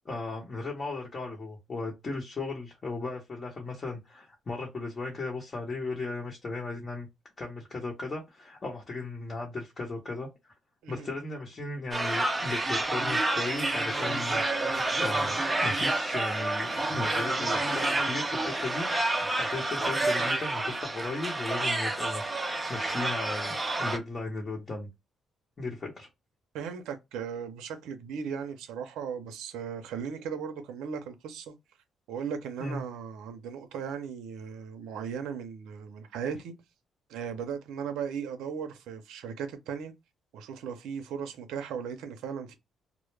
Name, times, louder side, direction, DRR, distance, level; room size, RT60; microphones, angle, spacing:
voice 1, 0.0-7.1 7.4-10.5 10.9-14.4 15.0-22.2 22.7-24.9 25.6-26.1 32.6-32.8, left 3 dB, 35° left, 0.9 m, -36 dB
sound 1, 11.9-24.0, right 2 dB, 15° right, 0.5 m, -29 dB
voice 2, 26.5-31.5 32.1-36.5 37.1-39.9 40.3-42.5, right 7 dB, 90° right, 0.5 m, -37 dB
2.1 x 2.0 x 3.1 m
cardioid pair, 90°, 0 cm